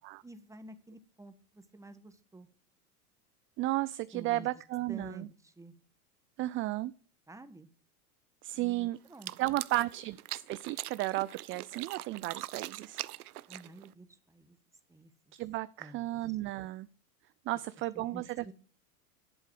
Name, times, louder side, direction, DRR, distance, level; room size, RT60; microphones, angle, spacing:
voice 1, 0.2-2.5 4.1-4.5 4.9-5.7 7.3-7.7 8.5-9.3 13.5-14.6 14.9-15.1 15.8-16.2 17.9-18.5, right 2 dB, 5° right, 10 dB, 1.3 m, -50 dB
voice 2, 3.6-5.3 6.4-6.9 8.4-9.0 9.4-13.0 15.3-16.9 17.5-18.5, right 18 dB, 30° right, 16 dB, 0.4 m, -34 dB
sound 1, 9.1-13.9, right 15 dB, 75° right, 0.7 m, -42 dB
11.0 x 8.2 x 4.7 m, 0.42 s
hypercardioid pair, 95°, 45 cm